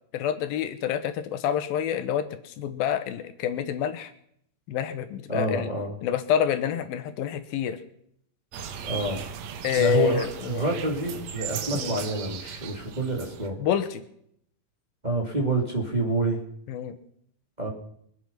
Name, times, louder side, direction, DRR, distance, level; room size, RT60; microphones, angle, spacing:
voice 1, 0.1-4.1 4.7-5.7 6.0-7.8 9.6-10.6 11.7-12.0 13.6-14.0 16.7-17.0, left 9 dB, 80° left, 10 dB, 2.9 m, -27 dB
voice 2, 5.3-5.9 8.9-9.2 9.8-13.6 15.0-16.4 17.6-17.7, right 2 dB, 15° right, -1 dB, 2.7 m, -27 dB
sound 1, 8.5-13.5, right 7 dB, 60° right, 2.1 m, -37 dB
24.5 x 9.4 x 5.8 m, 0.69 s
omnidirectional pair, 4.1 m